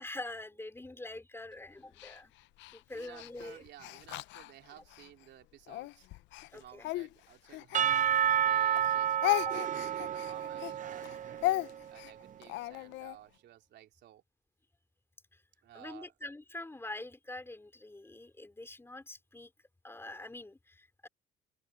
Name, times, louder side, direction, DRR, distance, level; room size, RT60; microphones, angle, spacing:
voice 1, 0.0-2.3 2.7-3.6 6.5-6.9 9.5-9.6 15.3-15.4 15.7-19.5 19.8-21.1, left 2 dB, 10° left, 4.2 m, -45 dB
Speech, 2.0-5.1 5.7-8.5 8.7-13.2, left 18 dB, 70° left, 0.7 m, -36 dB
voice 2, 2.9-6.1 6.5-8.0 8.4-14.2 15.6-16.1, right 12 dB, 65° right, 3.4 m, -55 dB
Percussion / Church bell, 7.7-11.9, right 10 dB, 40° right, 0.7 m, -30 dB
open air
supercardioid pair, 80°, 19 cm